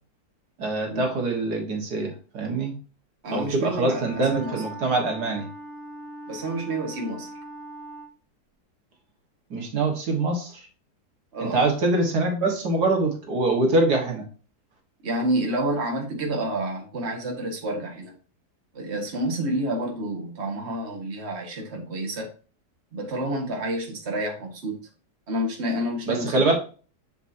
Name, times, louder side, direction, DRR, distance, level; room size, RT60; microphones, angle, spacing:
voice 1, 0.6-2.7 3.3-5.5 9.5-10.7 11.4-14.3 26.1-26.5, right 2 dB, 70° right, 2 dB, 2.2 m, -24 dB
voice 2, 3.2-4.6 6.3-7.3 11.3-11.6 15.0-18.1 18.7-22.3 22.9-24.9 25.3-26.5, right 1 dB, 40° right, 1 dB, 2.0 m, -29 dB
Wind instrument woodwind instrument, 3.7-8.2, right 1 dB, 45° left, 3.8 m, -41 dB
7.2 x 7.1 x 2.8 m, 0.37 s
omnidirectional pair, 1.8 m